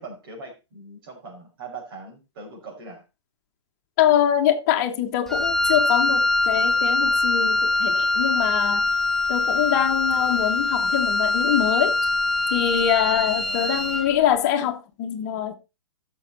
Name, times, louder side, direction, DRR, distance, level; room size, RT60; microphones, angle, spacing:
voice 1, 0.0-3.0 13.4-14.0, right 3 dB, 55° right, 5.3 m, -41 dB
voice 2, 4.0-8.9 9.3-12.0 12.5-15.5, left 10 dB, 35° left, 1.3 m, -24 dB
Wind instrument woodwind instrument, 5.3-14.2, left 2 dB, 5° left, 0.6 m, -23 dB
14.0 x 6.6 x 4.2 m
figure-of-eight pair, 115°, 15 cm